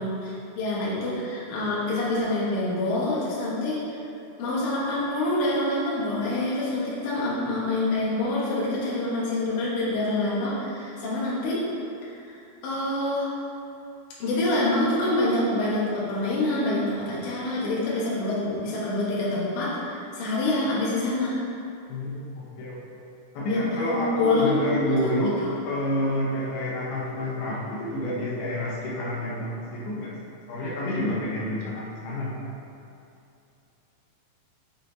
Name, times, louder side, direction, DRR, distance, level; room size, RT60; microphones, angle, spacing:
voice 1, 0.0-4.0 4.4-11.6 12.2-12.3 12.6-13.3 14.2-21.4 23.5-25.3, left 2 dB, 65° left, -7 dB, 2.5 m, -26 dB
voice 2, 21.9-23.0 23.3-25.4 25.6-32.5, left 1 dB, 85° left, -5 dB, 2.9 m, -29 dB
7.1 x 4.4 x 4.0 m, 2.7 s
omnidirectional pair, 4.3 m